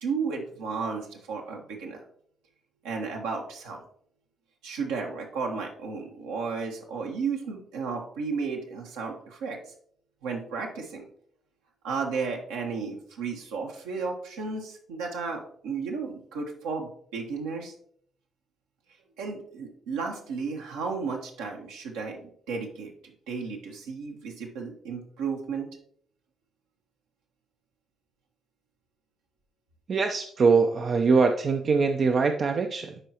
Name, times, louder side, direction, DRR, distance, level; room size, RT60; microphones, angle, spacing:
voice 1, 0.0-2.0 2.8-3.8 4.6-9.6 10.2-11.0 11.8-17.7 19.2-25.7, right 5 dB, 75° right, 0 dB, 1.2 m, -33 dB
voice 2, 29.9-33.0, right 4 dB, 50° right, 5 dB, 0.5 m, -23 dB
11.0 x 4.7 x 2.8 m, 0.63 s
hypercardioid pair, 45°, 0 cm